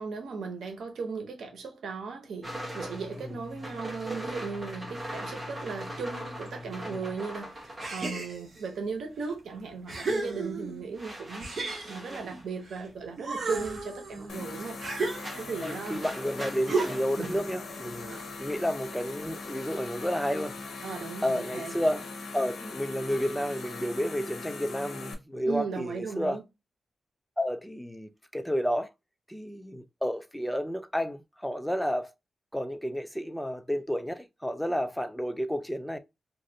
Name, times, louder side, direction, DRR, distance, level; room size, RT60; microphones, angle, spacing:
voice 1, 0.0-11.5 11.9-14.8 15.4-16.0 17.2-17.4 18.0-18.3 20.8-21.7 25.4-26.4, right 5 dB, 90° right, 0.8 m, -37 dB
sound 1, 2.4-9.1 9.4-21.0, equal, 20° right, 1.1 m, -42 dB
sound 2, 7.8-8.7 9.3-9.4 9.9-10.9 11.4-12.8 13.2-15.7 16.7-17.2, right 3 dB, 55° right, 1.0 m, -33 dB
sound 3, 14.3-25.1, left 3 dB, 85° left, 0.7 m, -40 dB
voice 2, 15.6-20.5 21.2-22.0 22.3-26.4 27.4-28.9 29.3-32.1 32.5-36.0, equal, 5° left, 0.4 m, -31 dB
3.0 x 2.6 x 2.7 m
cardioid pair, 95°, 0 cm